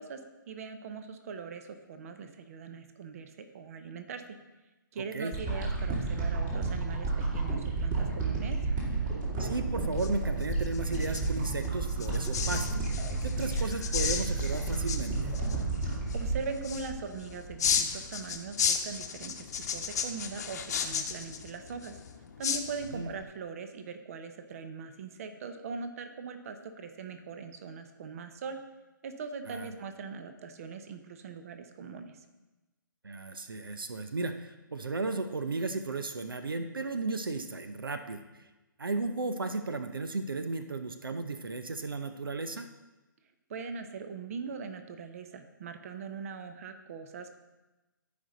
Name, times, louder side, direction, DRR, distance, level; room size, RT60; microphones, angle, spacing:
voice 1, 0.0-4.2 4.9-8.6 15.8-22.0 22.4-28.6 29.0-32.2 43.5-47.4, right 5 dB, 40° right, 8 dB, 0.8 m, -41 dB
sound 1, 5.3-17.6 18.1-18.2, right 3 dB, 25° right, 2.4 m, -31 dB
voice 2, 9.4-12.8 13.2-15.4 22.9-23.1 29.5-29.7 33.0-38.5 38.8-42.7, right 3 dB, 85° right, 8 dB, 0.7 m, -35 dB
sound 2, 9.6-23.2, left 7 dB, 50° left, 0.9 m, -35 dB
14.0 x 5.2 x 4.0 m, 1.1 s
figure-of-eight pair, 140°, 11 cm